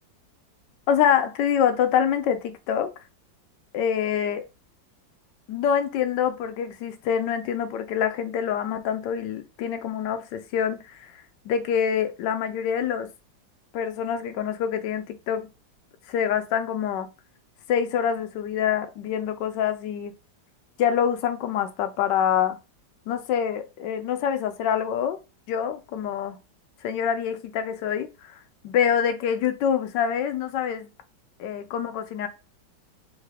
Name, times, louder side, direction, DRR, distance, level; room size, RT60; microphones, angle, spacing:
voice 1, 0.9-2.9 3.7-4.5 5.5-13.1 13.7-15.5 16.1-17.1 17.7-20.1 20.8-22.6 23.1-25.2 25.5-26.4 26.8-30.9 31.4-32.3, left 8 dB, 75° left, 1.3 m, -26 dB
4.6 x 2.8 x 3.4 m
omnidirectional pair, 2.0 m